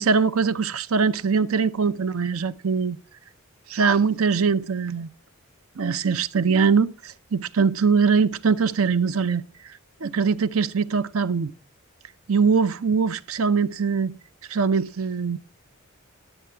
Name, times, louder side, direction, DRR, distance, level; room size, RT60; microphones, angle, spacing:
voice 1, 0.0-3.0 3.7-5.1 5.8-9.4 10.0-11.5 12.3-14.1 14.5-15.4, right 5 dB, 80° right, 0.6 m, -22 dB
11.0 x 9.2 x 3.4 m
head